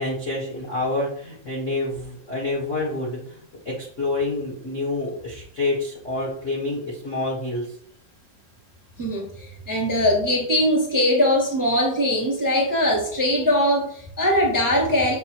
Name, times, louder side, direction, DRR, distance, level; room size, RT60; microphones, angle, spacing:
voice 1, 0.0-7.7, left 2 dB, 45° left, -4 dB, 0.9 m, -28 dB
voice 2, 9.0-15.2, left 1 dB, 10° left, -4 dB, 1.4 m, -21 dB
6.9 x 4.6 x 3.0 m, 0.63 s
omnidirectional pair, 3.8 m